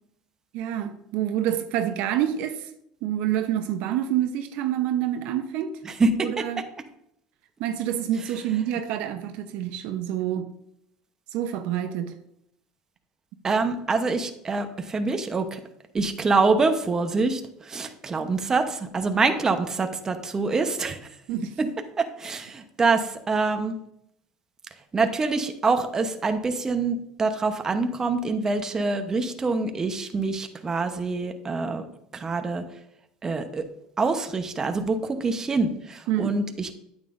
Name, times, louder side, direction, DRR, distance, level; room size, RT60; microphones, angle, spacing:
voice 1, 0.5-2.7 3.0-5.7 6.2-6.6 7.6-10.5 11.3-12.1 21.3-21.5 36.1-36.3, right 11 dB, 70° right, 0.8 m, -27 dB
voice 2, 5.8-6.4 13.4-15.6 15.9-21.0 21.6-21.7 22.0-23.7 24.9-31.8 32.1-32.6 33.2-33.7 34.0-36.7, right 3 dB, 25° right, 0.9 m, -25 dB
9.0 x 9.0 x 2.6 m
supercardioid pair, 110°, 2 cm